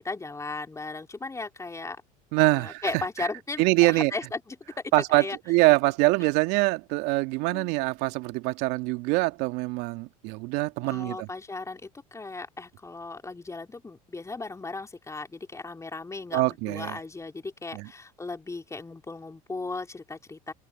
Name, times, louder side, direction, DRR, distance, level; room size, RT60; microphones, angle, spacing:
voice 1, 0.0-2.0 2.4-4.6 4.8-5.4 7.5-7.7 10.9-20.5, left 3 dB, 15° left, 3.2 m, -36 dB
voice 2, 2.3-2.8 3.6-4.1 4.9-11.3 16.3-17.0 17.7-17.9, right 23 dB, 65° right, 2.1 m, -24 dB
hypercardioid pair, 80°, 19 cm